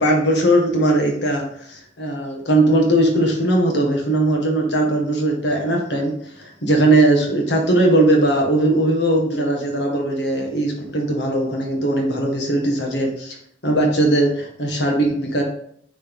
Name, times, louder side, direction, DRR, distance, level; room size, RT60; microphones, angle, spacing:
voice 1, 0.0-13.4 13.6-15.4, right 1 dB, 70° left, 1 dB, 1.8 m, -19 dB
9.4 x 4.1 x 3.7 m, 0.66 s
head